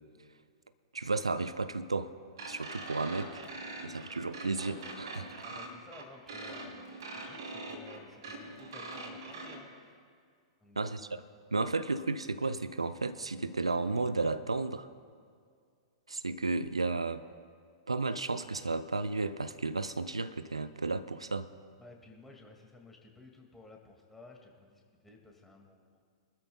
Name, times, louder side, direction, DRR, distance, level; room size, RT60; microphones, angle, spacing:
voice 1, 0.9-2.1 2.5-3.4 3.8-5.5 10.8-11.1 11.5-14.9 16.1-17.2 17.9-21.5, right 3 dB, 85° right, 12 dB, 0.5 m, -33 dB
sound 1, 2.4-9.6, right 2 dB, 60° right, 3.1 m, -43 dB
voice 2, 5.4-6.7 7.2-9.7 10.6-10.9 21.8-26.0, left 2 dB, 5° left, 1 dB, 2.1 m, -54 dB
24.0 x 13.0 x 2.3 m, 2.2 s
figure-of-eight pair, 105°, 3 cm